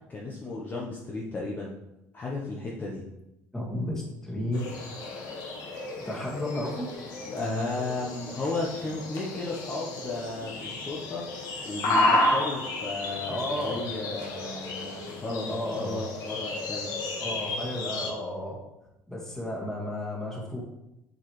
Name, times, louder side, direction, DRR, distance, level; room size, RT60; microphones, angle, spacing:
voice 1, 0.1-1.8 2.1-3.0 7.2-11.2 11.6-16.9, left 2 dB, 25° left, -4 dB, 1.1 m, -34 dB
voice 2, 3.5-4.7 5.0-5.1 6.0-6.9 13.3-13.8 15.5-16.0 17.2-18.6 19.1-20.6, left 1 dB, 5° left, -3 dB, 2.0 m, -33 dB
sound 1, 4.5-18.1, left 2 dB, 65° left, 1.7 m, -32 dB
7.5 x 4.9 x 3.3 m, 0.90 s
cardioid pair, 125°, 7 cm